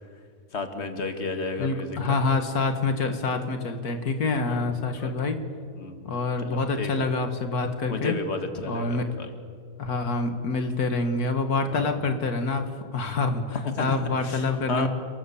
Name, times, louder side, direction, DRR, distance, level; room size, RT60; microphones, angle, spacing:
voice 1, 0.5-2.2 4.5-4.7 5.0-5.1 5.7-6.1 6.4-6.9 7.9-9.3 11.6-11.9 13.6-14.9, left 3 dB, 45° left, 6 dB, 2.4 m, -32 dB
voice 2, 1.6-5.4 6.0-8.2 8.7-9.1 9.8-13.4 13.8-14.9, left 3 dB, 85° left, 7 dB, 2.2 m, -26 dB
30.0 x 22.5 x 7.2 m, 2.2 s
omnidirectional pair, 1.6 m